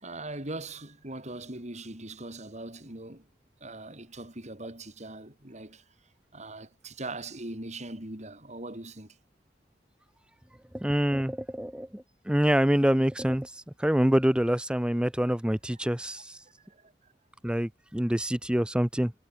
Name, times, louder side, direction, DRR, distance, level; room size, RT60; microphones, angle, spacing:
voice 1, 0.0-3.2 3.6-5.8 6.3-9.1 16.7-16.9, right 2 dB, 40° right, 4.8 m, -40 dB
voice 2, 10.7-13.5 13.8-16.2 17.4-19.1, equal, 5° right, 0.8 m, -26 dB
head